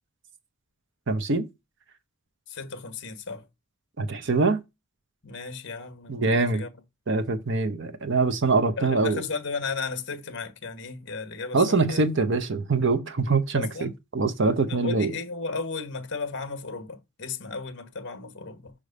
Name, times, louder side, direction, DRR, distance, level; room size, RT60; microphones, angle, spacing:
voice 1, 1.1-1.5 4.0-4.6 6.1-6.7 7.1-9.2 11.5-15.1, right 3 dB, 55° right, 0.8 m, -24 dB
voice 2, 2.5-3.4 5.2-6.7 8.8-11.6 11.9-12.0 13.6-13.9 14.7-18.7, left 4 dB, 50° left, 1.3 m, -34 dB
5.4 x 5.0 x 5.2 m
head